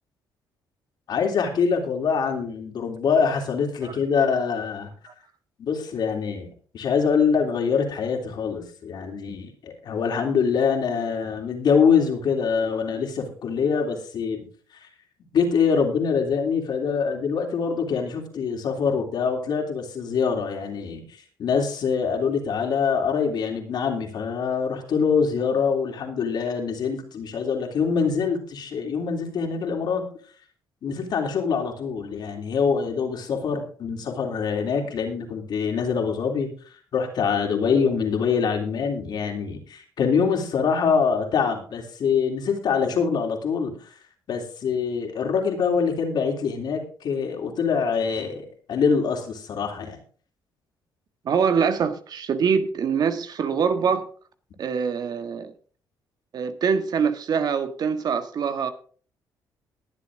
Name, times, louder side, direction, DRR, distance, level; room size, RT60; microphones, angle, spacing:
voice 1, 1.1-4.9 5.6-6.5 6.7-14.5 15.3-21.0 21.4-30.1 30.8-36.5 36.9-43.8 44.3-50.0, left 6 dB, 65° left, 3.4 m, -24 dB
voice 2, 51.2-54.1 54.6-55.5 56.3-58.7, right 6 dB, 60° right, 1.5 m, -24 dB
21.0 x 7.5 x 3.8 m
cardioid pair, 85°, 8 cm